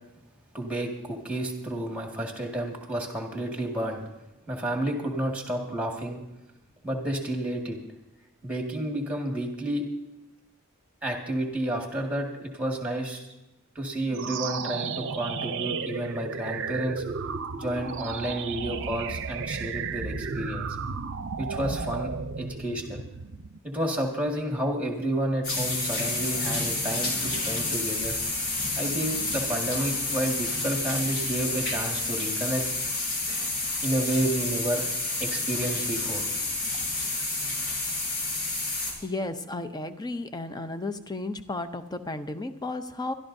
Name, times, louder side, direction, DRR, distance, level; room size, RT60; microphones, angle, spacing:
voice 1, 0.5-4.0 4.5-6.2 6.8-7.8 8.4-9.9 11.0-13.3 13.8-17.0 17.6-20.7 21.4-22.1 22.4-23.0 23.6-28.1 28.8-32.6 33.8-34.9 35.2-36.3, right 1 dB, 5° right, 1 dB, 1.8 m, -30 dB
sound 1, 14.1-23.6, right 5 dB, 55° right, 0.6 m, -33 dB
sound 2, 25.4-38.9, left 2 dB, 65° left, 4.4 m, -29 dB
voice 2, 39.0-43.1, left 2 dB, 20° left, 9 dB, 0.6 m, -33 dB
24.0 x 12.5 x 2.7 m, 0.99 s
head